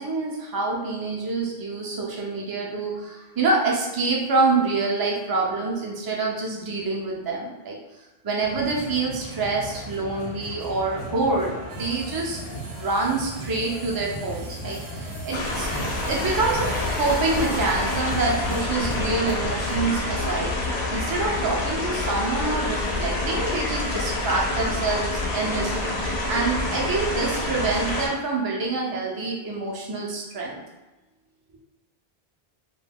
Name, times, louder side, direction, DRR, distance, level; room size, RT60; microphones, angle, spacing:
voice 1, 0.0-7.8 8.2-12.4 12.8-15.7 16.0-16.7 17.0-30.6, right 3 dB, 40° right, -2 dB, 0.3 m, -26 dB
sound 1, 8.4-19.8, equal, 50° left, 0.5 m, -36 dB
sound 2, 11.7-18.6, right 3 dB, 70° right, 0.8 m, -45 dB
sound 3, 15.3-28.1, left 2 dB, 90° left, 0.9 m, -27 dB
2.3 x 2.2 x 3.4 m, 1.1 s
omnidirectional pair, 1.0 m